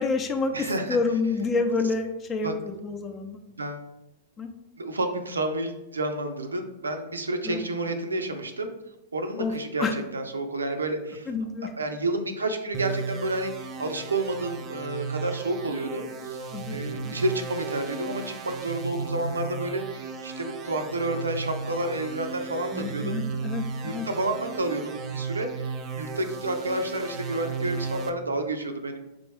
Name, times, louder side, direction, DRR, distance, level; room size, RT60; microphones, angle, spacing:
voice 1, 0.0-0.5 0.9-3.4 4.4-4.5 7.4-7.6 9.4-9.5 9.8-9.9 11.3-11.7 16.5-17.1 22.7-24.0, left 4 dB, 25° left, 6 dB, 0.6 m, -28 dB
voice 2, 0.5-1.0 2.4-2.5 3.6-3.8 4.8-8.7 9.1-11.3 11.6-23.2 23.8-29.0, right 2 dB, 85° right, 6 dB, 0.5 m, -30 dB
sound 1, 12.7-28.1, right 5 dB, 30° right, 0.5 m, -35 dB
3.6 x 3.4 x 3.3 m, 0.90 s
hypercardioid pair, 105°, 0 cm